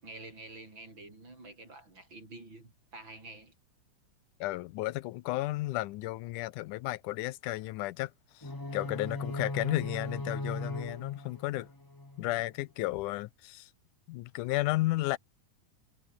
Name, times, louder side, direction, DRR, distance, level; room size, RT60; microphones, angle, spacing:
voice 1, 0.0-3.5, right 2 dB, 35° right, 8.1 m, -48 dB
voice 2, 4.4-11.7 12.2-13.7 14.1-15.2, left 18 dB, 85° left, 2.1 m, -33 dB
sound 1, 8.4-12.4, left 2 dB, 20° left, 0.6 m, -38 dB
omnidirectional pair, 3.6 m